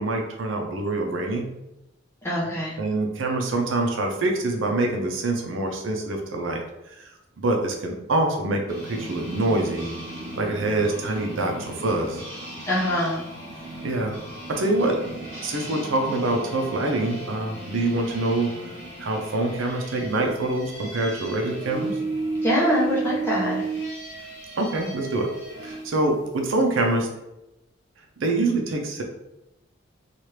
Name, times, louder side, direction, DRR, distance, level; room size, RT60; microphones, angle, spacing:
voice 1, 0.0-1.4 2.8-6.6 7.0-7.1 7.4-9.9 10.4-12.2 13.8-14.2 14.5-15.0 15.4-18.5 19.0-22.0 24.6-25.3 25.6-27.1 28.2-29.0, right 2 dB, 75° right, 2 dB, 0.5 m, -25 dB
voice 2, 2.2-2.8 12.6-13.2 22.4-23.6, equal, 10° left, -6 dB, 0.7 m, -24 dB
sound 1, 8.7-25.8, right 2 dB, 45° right, 1.5 m, -34 dB
2.9 x 2.4 x 3.2 m, 0.91 s
head